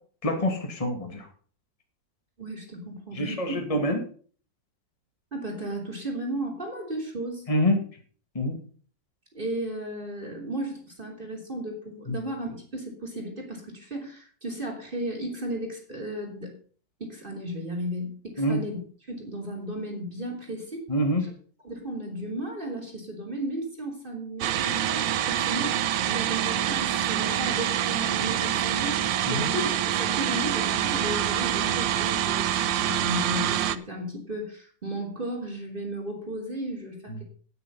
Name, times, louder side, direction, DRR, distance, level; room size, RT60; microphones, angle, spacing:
voice 1, 0.2-1.3 3.2-4.0 7.5-7.8 8.3-8.6 12.1-12.2 18.4-18.6 20.9-21.2 29.3-29.5, left 1 dB, 20° left, 4 dB, 2.0 m, -26 dB
voice 2, 2.4-3.8 5.3-7.4 9.3-16.5 17.0-18.8 19.1-20.8 21.6-29.0 29.3-32.5 32.8-37.2, right 1 dB, 25° right, 0 dB, 3.3 m, -34 dB
sound 1, 24.4-33.8, right 11 dB, 90° right, 1.4 m, -26 dB
9.8 x 9.5 x 5.4 m, 0.43 s
omnidirectional pair, 2.0 m